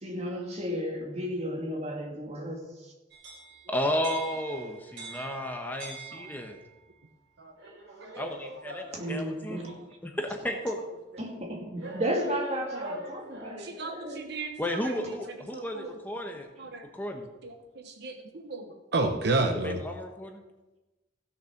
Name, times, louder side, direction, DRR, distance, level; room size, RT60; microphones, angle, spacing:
voice 1, 0.0-2.9 8.9-9.8 11.2-14.3, equal, 35° right, 2.4 m, -34 dB
sound 1, 3.1-6.7 7.6-9.9 10.6-10.7 11.8-13.7, right 2 dB, 85° right, 3.7 m, -43 dB
voice 2, 3.7-6.5 8.2-9.6 10.0-10.8 14.6-16.5 16.9-17.3 19.6-20.4, left 1 dB, 10° left, 1.1 m, -33 dB
voice 3, 7.4-7.7 8.0-8.1 13.5-15.1 15.5-16.0 16.6-16.8 17.4-19.8, right 2 dB, 60° right, 0.9 m, -32 dB
16.0 x 6.8 x 5.9 m
head